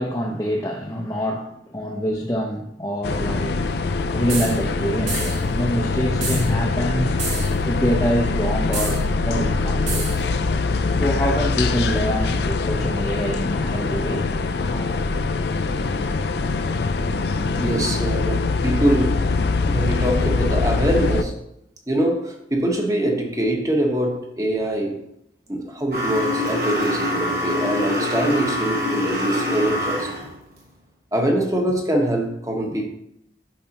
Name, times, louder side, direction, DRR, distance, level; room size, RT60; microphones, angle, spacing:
voice 1, 0.0-3.6 4.1-7.2 7.6-10.0 11.0-14.3 14.7-14.9 17.6-17.7, equal, 15° left, 0.6 m, -25 dB
sound 1, 3.0-21.2, left 3 dB, 60° left, 0.4 m, -23 dB
sound 2, 4.3-4.6 5.1-5.4 6.2-6.5 7.2-7.6 8.7-9.0 9.9-10.2, right 4 dB, 85° right, 2.0 m, -29 dB
voice 2, 17.6-19.3 19.7-21.4 21.9-25.0 25.5-30.1 31.1-32.9, right 1 dB, 20° right, 1.1 m, -23 dB
sound 3, 25.9-30.3, left 1 dB, 55° right, 3.0 m, -25 dB
10.5 x 5.5 x 2.9 m
head